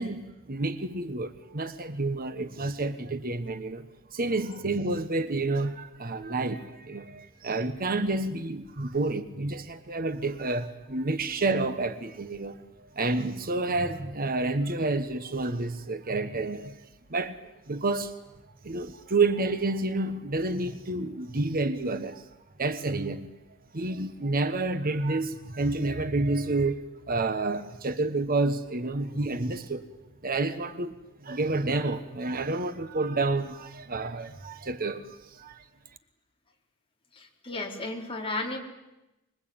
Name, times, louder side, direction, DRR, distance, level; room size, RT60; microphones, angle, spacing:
voice 1, 0.0-16.8 17.1-17.4 17.7-18.2 18.6-22.3 22.6-23.3 23.7-29.9 30.2-30.9 31.2-35.6, right 2 dB, 45° right, 1.2 m, -29 dB
voice 2, 37.1-38.6, left 2 dB, 25° left, 4.3 m, -34 dB
25.0 x 22.5 x 8.9 m
head